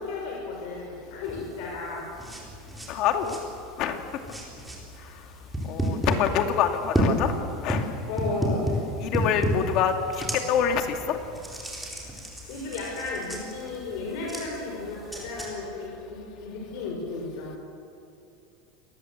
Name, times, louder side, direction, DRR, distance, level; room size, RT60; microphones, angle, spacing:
voice 1, 0.0-2.0 8.1-8.7 12.5-17.5, left 3 dB, 60° left, -2 dB, 6.8 m, -34 dB
sound 1, 1.2-15.5, right 1 dB, 5° right, 4.4 m, -32 dB
voice 2, 2.9-3.4 3.8-4.0 5.7-7.3 7.6-7.8 9.1-9.9 10.5-11.2, left 8 dB, 40° left, 5 dB, 2.5 m, -25 dB
27.5 x 20.0 x 8.2 m, 2.7 s
supercardioid pair, 160°, 0 cm